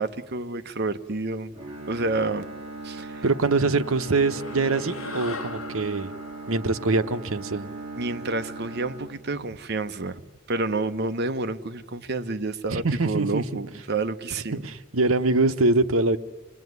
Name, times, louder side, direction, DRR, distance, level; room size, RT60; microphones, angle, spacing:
voice 1, 0.0-1.6 1.9-2.4 2.8-3.2 8.0-10.2 10.5-14.7, right 3 dB, 50° right, 0.9 m, -29 dB
Bowed string instrument, 1.5-9.8, right 2 dB, 25° right, 3.0 m, -39 dB
voice 2, 3.2-6.1 6.5-7.7 12.7-13.6 14.6-16.2, right 3 dB, 75° right, 0.9 m, -24 dB
sound 1, 3.8-8.5, left 3 dB, 70° left, 1.6 m, -41 dB
28.5 x 19.5 x 9.5 m
head